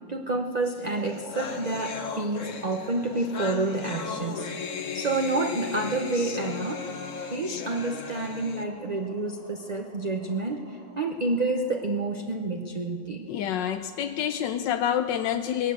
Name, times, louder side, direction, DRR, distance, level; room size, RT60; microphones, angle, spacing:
voice 1, 0.1-6.9 7.3-13.3, right 2 dB, 30° right, 3 dB, 0.8 m, -29 dB
sound 1, 0.8-0.9 1.0-8.6, left 5 dB, 50° left, 1.5 m, -36 dB
sound 2, 0.9-13.2, equal, 90° right, 8.4 m, -47 dB
voice 2, 13.3-15.7, left 9 dB, 85° left, 8 dB, 1.4 m, -27 dB
19.0 x 18.5 x 7.8 m, 2.2 s
omnidirectional pair, 1.9 m